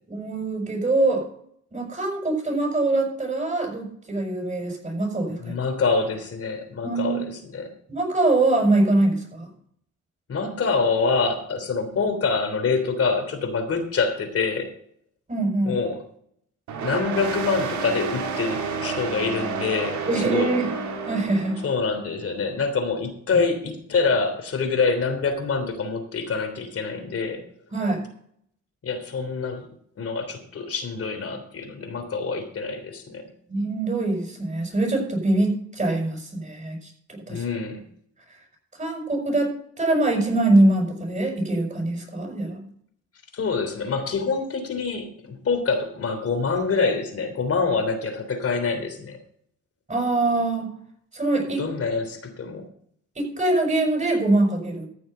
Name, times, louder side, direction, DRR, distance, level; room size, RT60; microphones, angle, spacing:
voice 1, 0.1-1.2 1.7-5.5 6.8-7.2 7.9-9.5 15.3-15.8 20.0-20.7 21.0-21.6 27.7-28.0 33.5-36.8 37.1-37.4 38.8-42.6 49.9-50.7 51.1-51.7 53.2-54.9, right 2 dB, 25° right, 2 dB, 6.4 m, -23 dB
voice 2, 5.4-7.7 10.3-14.7 15.6-16.0 16.8-20.5 21.6-27.4 28.8-29.7 30.0-33.3 37.3-37.8 43.3-49.2 51.6-52.6, left 4 dB, 50° left, 7 dB, 3.3 m, -26 dB
sound 1, 16.7-21.8, right 5 dB, 75° right, 3.1 m, -30 dB
14.5 x 7.0 x 5.7 m, 0.65 s
cardioid pair, 90°, 30 cm